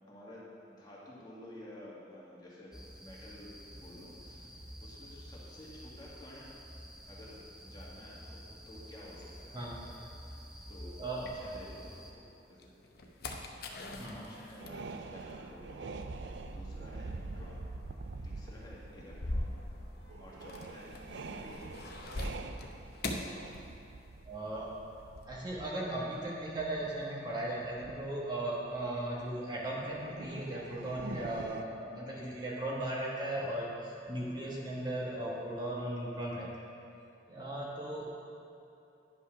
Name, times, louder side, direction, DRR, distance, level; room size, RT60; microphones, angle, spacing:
voice 1, 0.1-4.5 4.8-6.5 7.1-12.7 13.7-15.9 16.4-17.7 18.2-19.6 20.2-21.8, left 1 dB, 25° left, -6 dB, 1.7 m, -52 dB
sound 1, 2.7-12.1, equal, 5° right, 0.7 m, -50 dB
sound 2, 9.2-12.0 12.4-24.2 24.4-25.3, left 1 dB, 60° left, 0.8 m, -43 dB
sound 3, 14.6-28.2 28.8-29.2 29.8-31.6, right 3 dB, 80° right, 0.5 m, -45 dB
voice 2, 24.3-24.7 25.3-36.5 37.3-38.0, right 1 dB, 25° right, -5 dB, 1.2 m, -37 dB
10.0 x 5.5 x 5.9 m, 2.7 s
head